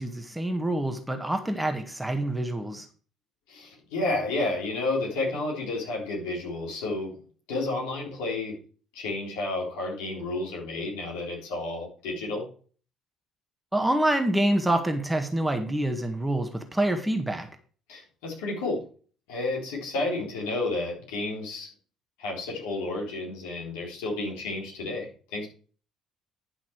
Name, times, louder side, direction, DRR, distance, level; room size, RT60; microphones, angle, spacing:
voice 1, 0.0-2.9 13.7-17.5, right 1 dB, 5° right, 5 dB, 1.7 m, -26 dB
voice 2, 3.5-7.1 7.5-8.6 8.9-12.5 17.9-18.8 19.3-21.7 22.2-25.5, left 2 dB, 65° left, -3 dB, 3.8 m, -31 dB
11.0 x 6.0 x 4.7 m, 0.41 s
figure-of-eight pair, 50°, 0 cm